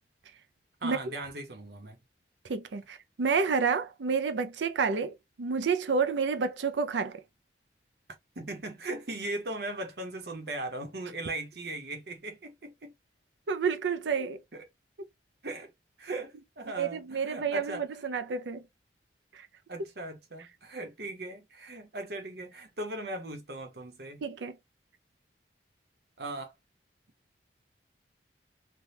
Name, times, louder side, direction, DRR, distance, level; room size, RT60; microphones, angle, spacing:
voice 1, 0.8-2.0 8.4-12.9 14.5-14.6 15.4-15.7 16.0-18.0 19.7-24.2 26.2-26.5, right 2 dB, 60° right, 0.9 m, -38 dB
voice 2, 2.5-7.2 13.5-14.4 16.8-18.6 19.3-19.5 24.2-24.6, right 5 dB, 80° right, 0.5 m, -29 dB
3.4 x 2.3 x 2.7 m
head